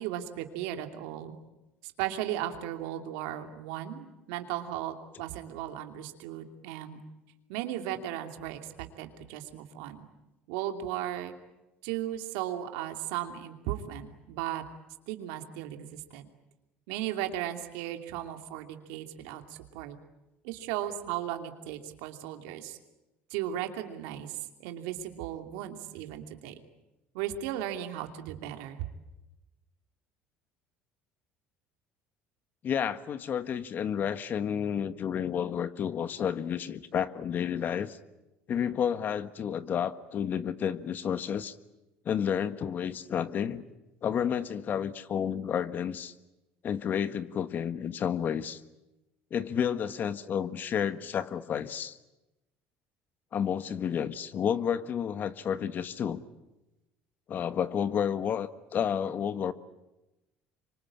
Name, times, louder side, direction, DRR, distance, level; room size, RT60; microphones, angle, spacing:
voice 1, 0.0-1.4 1.8-7.0 7.5-10.1 10.5-11.3 11.8-14.6 15.1-16.2 16.9-19.4 19.7-20.0 20.4-22.8 23.3-26.5 27.1-28.8, right 12 dB, 85° right, 6 dB, 2.7 m, -36 dB
voice 2, 32.6-38.0 38.5-41.5 42.0-43.6 44.0-46.1 46.6-48.6 49.3-52.0 53.3-56.2 57.3-59.5, left 8 dB, 45° left, 13 dB, 1.4 m, -31 dB
26.5 x 24.5 x 8.8 m, 0.97 s
supercardioid pair, 100°, 4 cm